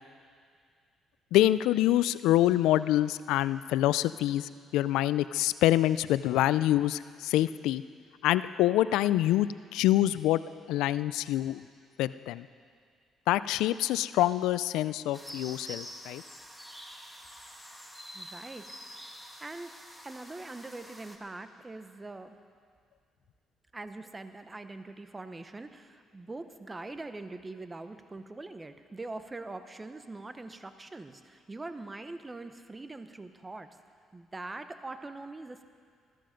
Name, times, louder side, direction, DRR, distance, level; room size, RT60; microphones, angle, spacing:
voice 1, 1.3-7.8 8.2-10.4 10.7-11.6 12.0-12.5 13.3-16.2, left 14 dB, 85° left, 16 dB, 0.3 m, -26 dB
sound 1, 15.1-21.2, equal, ahead, 1.5 m, -47 dB
voice 2, 18.1-19.7 20.0-22.4 23.7-33.7 34.1-35.6, right 2 dB, 20° right, 9 dB, 0.9 m, -43 dB
14.5 x 13.5 x 5.2 m, 2.1 s
supercardioid pair, 80°, 0 cm